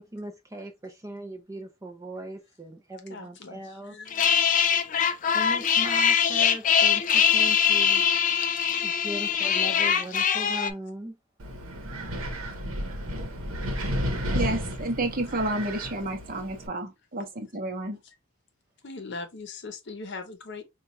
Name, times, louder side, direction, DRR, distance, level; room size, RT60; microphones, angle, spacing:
voice 1, 0.0-4.0 5.3-8.1 8.8-11.2, right 1 dB, 15° right, 0.5 m, -39 dB
voice 2, 3.1-4.3 18.0-18.2 18.8-20.6, left 3 dB, 55° left, 0.8 m, -40 dB
sound 1, 4.1-10.7, left 8 dB, 40° left, 0.4 m, -22 dB
Wind, 11.4-16.7, equal, 80° right, 0.9 m, -32 dB
voice 3, 14.3-18.0, right 2 dB, 40° right, 0.8 m, -30 dB
4.3 x 2.3 x 2.6 m
head